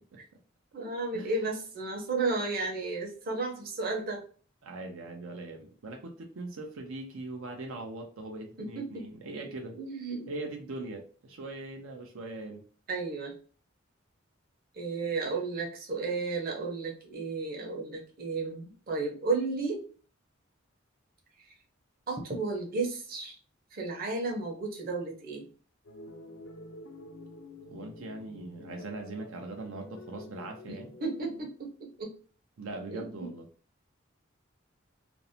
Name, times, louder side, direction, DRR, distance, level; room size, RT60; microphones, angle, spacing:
voice 1, 0.7-4.2 8.6-9.0 9.3-9.5 9.7-10.3 12.9-13.3 14.7-19.8 22.1-23.4 23.7-25.5 30.7-32.1 32.9-33.0, right 3 dB, 45° right, 0 dB, 0.7 m, -33 dB
voice 2, 4.6-9.8 10.3-12.6 27.7-30.9 32.6-33.5, right 2 dB, 90° right, 2 dB, 0.5 m, -41 dB
sound 1, 25.9-31.5, left 2 dB, 75° left, 0.5 m, -48 dB
2.6 x 2.0 x 2.6 m, 0.41 s
head